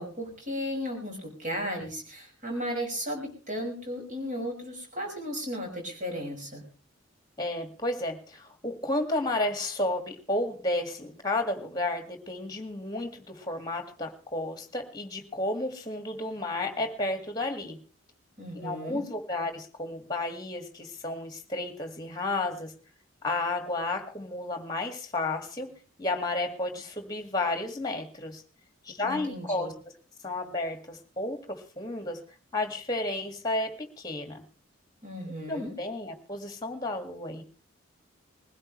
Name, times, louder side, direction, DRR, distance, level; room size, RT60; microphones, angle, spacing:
voice 1, 0.0-6.6 18.4-19.0 29.0-29.7 35.0-35.7, equal, 35° right, 0 dB, 6.0 m, -35 dB
voice 2, 7.4-17.8 18.5-22.7 23.2-25.7 26.0-28.4 28.8-29.7 30.2-32.2 32.5-34.4 35.3-37.4, left 2 dB, 20° left, 7 dB, 2.0 m, -32 dB
21.0 x 16.5 x 3.2 m, 0.36 s
head